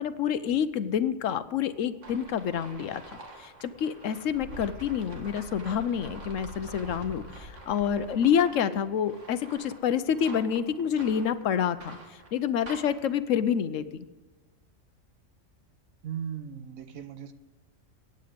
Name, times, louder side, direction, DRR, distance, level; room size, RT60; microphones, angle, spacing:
voice 1, 0.0-14.1, left 8 dB, 75° left, 13 dB, 1.1 m, -28 dB
sound 1, 2.0-13.1, right 2 dB, 65° right, 2.3 m, -45 dB
voice 2, 16.0-17.3, right 8 dB, 85° right, 10 dB, 1.4 m, -37 dB
15.5 x 9.7 x 5.1 m, 1.3 s
omnidirectional pair, 1.4 m